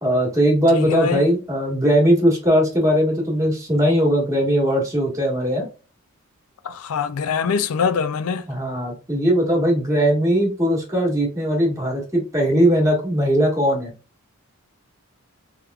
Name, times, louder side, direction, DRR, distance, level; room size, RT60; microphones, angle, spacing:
voice 1, 0.0-5.6 8.5-13.9, equal, 15° right, 1.4 m, -19 dB
voice 2, 0.7-1.2 6.6-8.4, left 6 dB, 70° left, 0.4 m, -23 dB
3.3 x 3.1 x 2.3 m
head